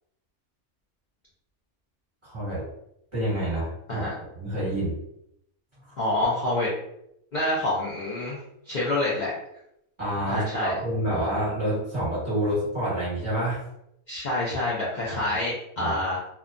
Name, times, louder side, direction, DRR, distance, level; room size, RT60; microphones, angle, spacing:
voice 1, 2.2-2.6 3.1-4.1 4.4-4.9 10.0-13.6 15.8-15.9, right 1 dB, 20° right, -10 dB, 1.3 m, -28 dB
voice 2, 6.0-6.7 7.3-8.4 8.7-9.3 10.2-10.8 14.1-16.2, left 1 dB, 70° left, -7 dB, 0.4 m, -27 dB
2.7 x 2.2 x 2.5 m, 0.78 s
omnidirectional pair, 1.6 m